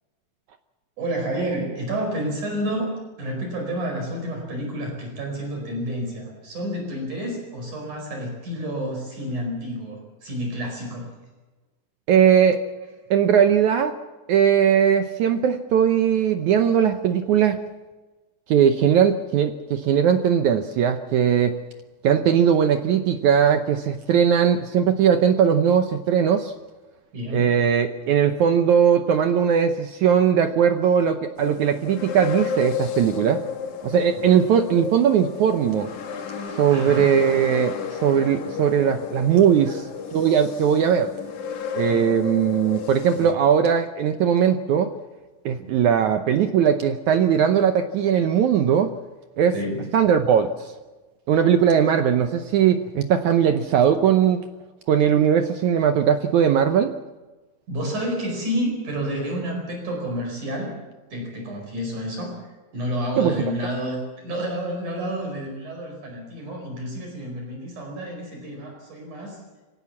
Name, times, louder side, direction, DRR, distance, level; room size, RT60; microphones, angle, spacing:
voice 1, 1.0-11.1 12.8-12.9 27.1-27.5 34.2-34.4 36.7-37.1 39.7-39.8 41.9-42.0 43.1-43.3 45.6-45.7 49.5-49.9 57.7-60.8 61.1-69.4, equal, 55° right, 2 dB, 6.2 m, -30 dB
voice 2, 12.1-12.6 13.1-14.0 14.3-17.6 18.5-21.6 22.0-26.5 27.3-33.4 33.8-35.9 36.6-39.8 40.1-41.1 41.7-44.9 45.5-48.9 49.4-49.5 49.9-50.8 51.3-54.4 54.9-56.9 63.2-63.3, right 8 dB, 75° right, 7 dB, 1.8 m, -19 dB
sound 1, 31.4-43.3, left 6 dB, 55° left, 2.9 m, -32 dB
25.0 x 17.5 x 7.4 m, 1.2 s
omnidirectional pair, 4.4 m